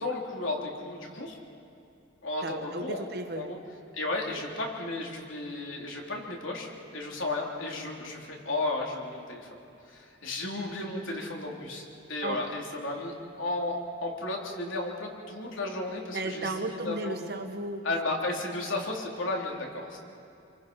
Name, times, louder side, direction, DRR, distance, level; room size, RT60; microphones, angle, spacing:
voice 1, 0.0-1.4 2.2-3.0 3.4-3.6 3.9-9.5 9.9-13.8 14.0-17.2 17.8-20.0, left 2 dB, 70° left, 0 dB, 3.5 m, -34 dB
voice 2, 2.4-3.5 12.2-12.5 16.1-17.9 18.5-18.7, right 2 dB, 50° right, 6 dB, 1.6 m, -34 dB
28.0 x 23.5 x 5.5 m, 2.7 s
head